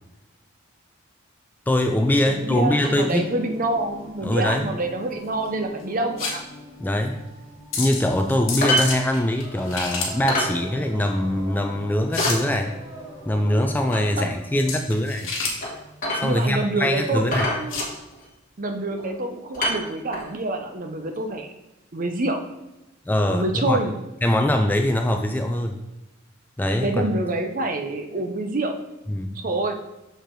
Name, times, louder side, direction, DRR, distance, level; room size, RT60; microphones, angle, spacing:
voice 1, 1.7-3.3 4.2-4.7 6.8-7.2 7.8-12.7 13.3-15.3 16.2-17.5 23.1-23.8 24.2-25.8 26.6-27.1 29.1-29.4, left 1 dB, 10° left, 4 dB, 0.3 m, -22 dB
Singing, 1.8-15.0, equal, 20° right, 1.1 m, -44 dB
voice 2, 2.3-6.4 14.2-14.3 16.2-17.8 18.6-21.5 21.9-22.4 23.3-23.9 26.8-28.8 29.4-29.8, right 2 dB, 40° right, 5 dB, 0.7 m, -27 dB
sound 1, 3.3-17.9, left 4 dB, 70° left, 1.4 m, -33 dB
sound 2, 8.6-8.9 9.2-9.3 9.7-9.8 10.3-10.6 11.0-11.1 11.5-11.6 12.2-12.4 13.9-14.1 15.6-15.7 16.0-16.6 16.8-17.0 17.3-18.2 19.0-19.2 19.5-20.3 21.3-21.4, equal, 40° left, 1.5 m, -26 dB
6.7 x 4.8 x 3.8 m, 0.96 s
head